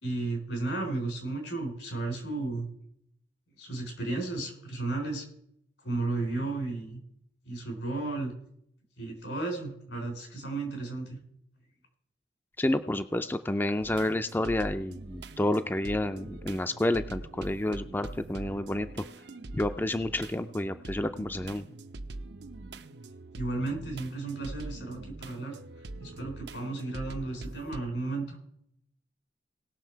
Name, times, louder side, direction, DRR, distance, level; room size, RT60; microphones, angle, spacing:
voice 1, 0.0-2.7 3.6-5.3 5.8-7.0 7.5-8.3 9.0-11.2 23.3-25.6 25.9-28.4, right 2 dB, 90° left, 3 dB, 3.9 m, -33 dB
voice 2, 12.6-18.9 19.5-21.6, left 1 dB, 10° left, 9 dB, 0.4 m, -29 dB
sound 1, 13.8-27.8, right 2 dB, 75° right, 0.7 m, -43 dB
18.5 x 6.4 x 4.5 m, 0.71 s
head